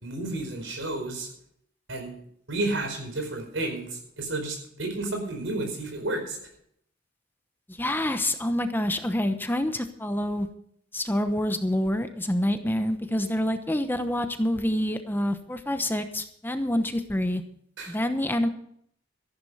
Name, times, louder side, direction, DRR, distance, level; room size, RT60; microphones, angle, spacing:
voice 1, 0.0-1.3 1.9-2.2 2.5-6.4 17.8-18.0, right 2 dB, 80° right, 4 dB, 4.8 m, -31 dB
voice 2, 7.7-10.5 10.9-17.4 17.9-18.5, left 1 dB, 10° left, 8 dB, 0.9 m, -27 dB
14.0 x 11.5 x 5.5 m, 0.68 s
head